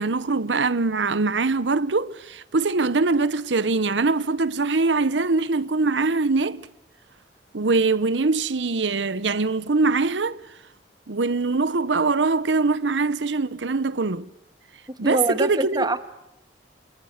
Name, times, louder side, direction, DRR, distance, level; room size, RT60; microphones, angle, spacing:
voice 1, 0.0-6.6 7.5-10.4 11.1-14.3 15.0-15.9, right 3 dB, 85° right, 1.0 m, -23 dB
voice 2, 15.0-16.0, right 1 dB, 25° right, 2.0 m, -24 dB
30.0 x 26.5 x 6.6 m
head